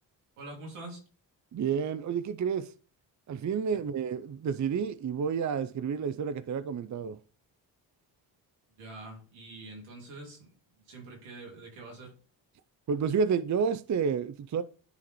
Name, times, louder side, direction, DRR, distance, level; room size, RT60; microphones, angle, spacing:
voice 1, 0.4-1.0 8.8-12.1, right 2 dB, 90° right, 2.6 m, -45 dB
voice 2, 1.5-2.7 3.3-7.2 12.9-14.6, right 6 dB, 40° right, 0.6 m, -30 dB
10.5 x 3.7 x 3.1 m
supercardioid pair, 45°, 48 cm